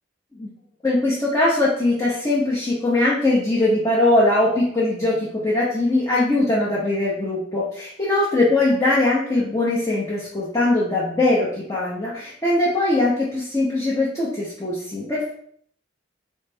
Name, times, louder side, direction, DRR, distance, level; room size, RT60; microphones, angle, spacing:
voice 1, 0.8-15.3, left 2 dB, 20° left, -7 dB, 0.9 m, -21 dB
4.4 x 3.2 x 3.4 m, 0.63 s
head